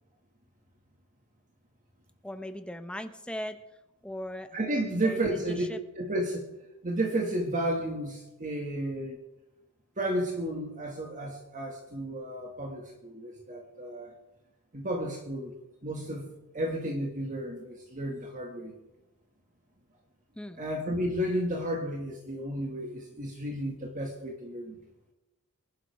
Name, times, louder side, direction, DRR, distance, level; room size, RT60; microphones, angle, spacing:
voice 1, 2.2-3.6 4.0-4.6 4.9-5.8 20.4-20.6, left 1 dB, 5° left, 8 dB, 0.9 m, -38 dB
voice 2, 4.5-5.6 6.0-6.5 6.8-9.2 10.0-14.1 14.7-15.5 15.8-16.3 16.5-18.7 20.6-24.8, right 1 dB, 35° right, 1 dB, 2.0 m, -32 dB
25.0 x 11.5 x 3.6 m, 0.97 s
head